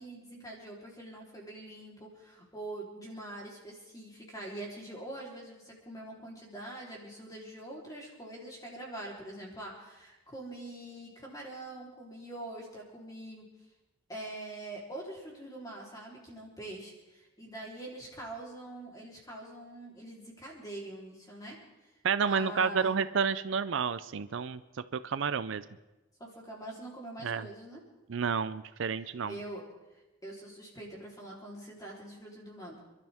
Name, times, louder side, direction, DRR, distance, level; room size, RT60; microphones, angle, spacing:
voice 1, 0.0-13.5 14.1-21.6 22.3-22.9 26.2-27.8 29.3-29.6 30.2-32.8, right 1 dB, 15° left, -3 dB, 3.6 m, -44 dB
voice 2, 22.0-24.6 24.9-25.6 27.2-27.5 28.1-29.4, right 6 dB, 60° right, 14 dB, 0.4 m, -30 dB
28.0 x 12.0 x 3.6 m, 1.0 s
head